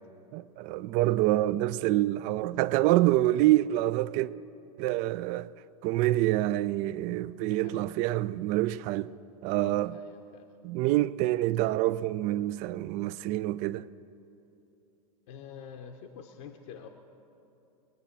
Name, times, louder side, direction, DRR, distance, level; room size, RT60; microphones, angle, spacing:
voice 1, 0.3-4.3 4.8-5.5 5.8-9.1 9.4-9.9 10.6-13.9, right 15 dB, 40° right, 0.4 m, -26 dB
voice 2, 7.5-7.9 9.6-10.5 15.3-16.9, left 7 dB, 55° left, 1.0 m, -46 dB
21.5 x 8.8 x 6.1 m
figure-of-eight pair, 95°, 19 cm